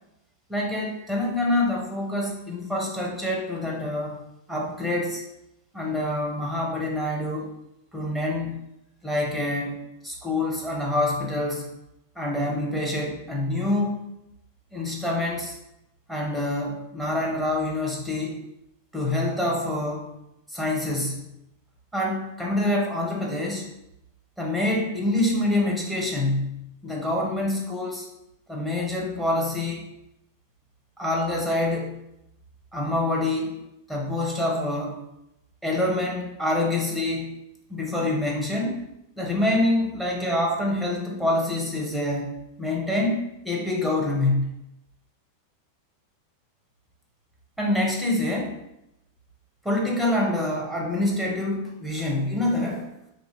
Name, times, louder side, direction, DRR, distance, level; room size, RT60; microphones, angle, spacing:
voice 1, 0.5-5.2 5.7-7.5 7.9-8.6 9.0-11.7 12.2-14.0 14.7-15.5 16.1-18.4 18.9-20.1 20.5-21.2 21.9-23.7 24.4-28.1 28.5-29.9 31.0-32.0 32.7-35.0 35.6-37.4 37.7-38.8 39.2-44.5 47.6-48.6 49.6-52.9, left 1 dB, ahead, -2 dB, 0.9 m, -26 dB
3.2 x 2.6 x 3.3 m, 0.86 s
figure-of-eight pair, 90°, 0 cm